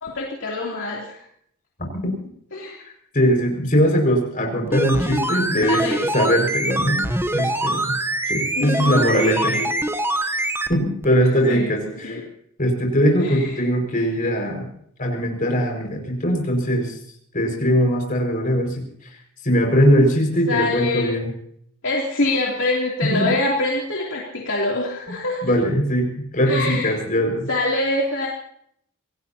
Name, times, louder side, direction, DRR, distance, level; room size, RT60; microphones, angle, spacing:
voice 1, 0.0-1.2 2.5-2.8 5.6-6.1 8.5-9.7 11.5-12.2 13.2-13.6 20.5-21.1 21.8-25.4 26.5-27.0 27.5-28.3, left 2 dB, 60° left, -3 dB, 3.1 m, -25 dB
voice 2, 2.8-5.8 6.1-7.0 7.3-8.0 8.3-9.6 10.7-12.2 12.6-14.7 15.0-17.0 17.3-18.8 19.4-21.3 23.0-23.3 25.4-26.1 26.3-27.5, equal, 40° left, 1 dB, 5.6 m, -20 dB
sound 1, 4.7-10.8 11.0-11.1, right 1 dB, 10° right, 0.9 m, -24 dB
27.5 x 18.0 x 2.9 m, 0.69 s
head